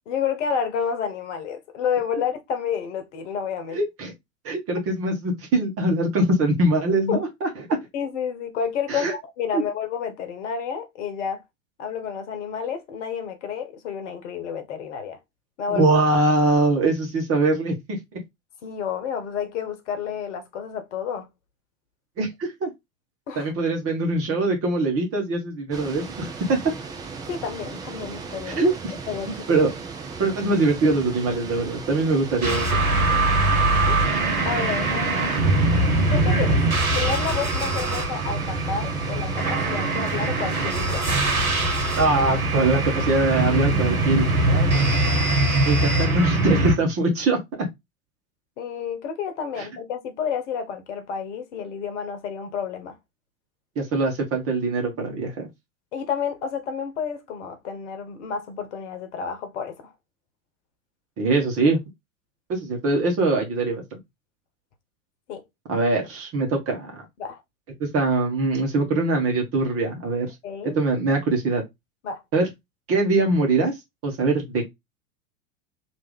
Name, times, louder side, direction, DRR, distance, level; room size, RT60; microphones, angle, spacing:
voice 1, 0.1-3.8 7.1-7.2 7.9-11.4 11.8-15.2 15.6-15.9 18.6-21.3 23.3-23.5 27.3-28.6 29.1-29.6 33.1-33.3 33.9-34.1 34.4-36.6 36.9-41.2 48.6-53.0 55.9-59.9 65.3-65.4 67.2-67.4 70.4-70.8 72.0-72.2, left 7 dB, 55° left, 1.1 m, -30 dB
voice 2, 3.7-4.1 4.4-7.5 8.9-9.1 9.5-9.6 15.7-18.2 22.2-22.7 23.3-26.6 28.5-28.9 29.5-29.7 30.2-32.9 42.0-44.9 45.6-47.7 49.6-49.7 53.7-55.5 61.2-61.8 62.5-64.0 65.7-67.0 67.8-70.3 70.8-71.6 72.3-72.5 72.9-73.8 74.0-74.7, right 2 dB, 30° right, 1.3 m, -23 dB
sound 1, 25.7-45.4, right 4 dB, 10° right, 0.3 m, -37 dB
sound 2, 32.4-46.8, right 2 dB, 85° right, 1.1 m, -22 dB
3.3 x 2.7 x 3.3 m
figure-of-eight pair, 90°, 42 cm